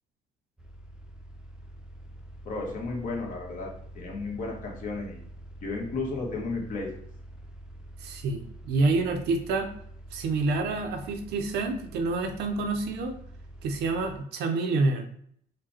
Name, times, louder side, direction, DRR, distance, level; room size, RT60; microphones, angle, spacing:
sound 1, 0.6-14.2, right 1 dB, 5° right, 0.7 m, -46 dB
voice 1, 2.4-3.7 3.9-5.2 5.6-6.9, left 3 dB, 50° left, -1 dB, 1.5 m, -33 dB
voice 2, 8.0-9.7 10.1-13.1 13.6-15.0, right 3 dB, 75° right, 5 dB, 0.8 m, -28 dB
5.0 x 2.2 x 4.3 m, 0.63 s
cardioid pair, 110°, 17 cm